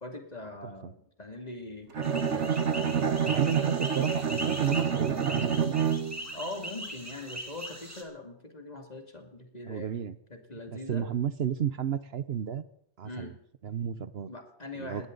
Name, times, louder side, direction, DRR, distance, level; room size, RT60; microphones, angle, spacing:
voice 1, 0.0-3.7 6.3-10.0 10.3-11.1 13.0-13.4 14.3-15.1, left 2 dB, 35° left, 4 dB, 2.6 m, -42 dB
Bowed string instrument, 1.9-6.3, right 7 dB, 80° right, 1.5 m, -28 dB
sound 1, 2.0-8.0, equal, 15° right, 2.8 m, -40 dB
voice 2, 3.3-5.8 9.6-10.2 10.7-12.7 13.0-13.3 13.6-14.3 14.8-15.1, right 8 dB, 65° right, 14 dB, 1.0 m, -32 dB
20.5 x 17.5 x 3.9 m, 0.70 s
omnidirectional pair, 1.2 m